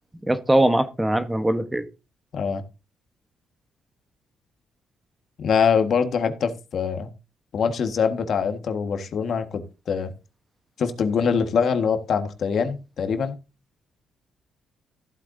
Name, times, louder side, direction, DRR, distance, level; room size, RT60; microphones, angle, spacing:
voice 1, 0.3-1.8, right 1 dB, 10° right, 1.1 m, -21 dB
voice 2, 5.4-7.1 7.5-10.1 10.8-13.3, left 6 dB, 60° left, 1.6 m, -24 dB
15.0 x 8.3 x 2.7 m
cardioid pair, 90°, 0 cm